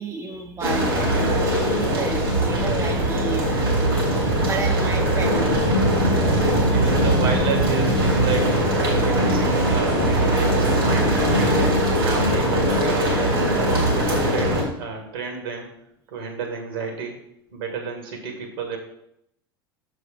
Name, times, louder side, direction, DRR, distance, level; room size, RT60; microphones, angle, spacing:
voice 1, 0.0-3.9 4.5-5.6, right 4 dB, 25° right, 4 dB, 0.8 m, -31 dB
sound 1, 0.6-14.6, right 1 dB, 85° right, 3.1 m, -20 dB
voice 2, 5.9-11.5 12.0-15.7 16.1-17.2 17.5-18.8, right 4 dB, 70° right, 3 dB, 2.2 m, -32 dB
6.7 x 5.1 x 5.1 m, 0.74 s
figure-of-eight pair, 80°, 12 cm